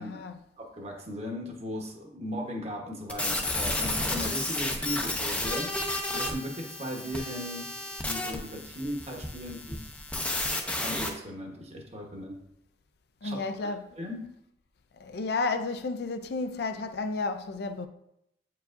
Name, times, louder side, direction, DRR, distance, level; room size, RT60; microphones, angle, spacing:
voice 1, 0.0-0.4 13.2-13.8 15.0-17.9, left 3 dB, 60° left, 0.4 m, -32 dB
voice 2, 0.6-5.7 6.1-7.7 8.0-9.9 10.7-12.4 13.2-13.4 14.0-14.2, equal, 35° right, 1.1 m, -37 dB
sound 1, 3.1-11.1, left 1 dB, 5° left, 0.6 m, -32 dB
8.1 x 4.6 x 2.6 m
head